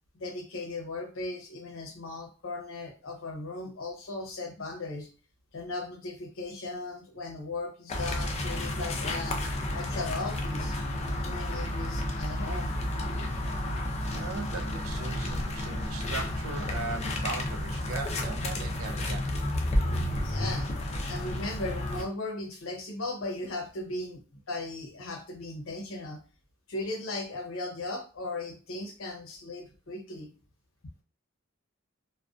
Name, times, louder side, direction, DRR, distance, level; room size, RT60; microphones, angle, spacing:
voice 1, 0.2-5.1 5.5-9.4 9.7-10.8 11.2-12.8 20.2-20.7 21.1-26.2 26.7-30.3, left 2 dB, 85° left, 0.7 m, -37 dB
sound 1, 7.9-22.0, left 1 dB, 30° left, 0.4 m, -31 dB
voice 2, 14.1-19.3, right 3 dB, 85° right, 0.4 m, -38 dB
2.4 x 2.2 x 2.3 m
head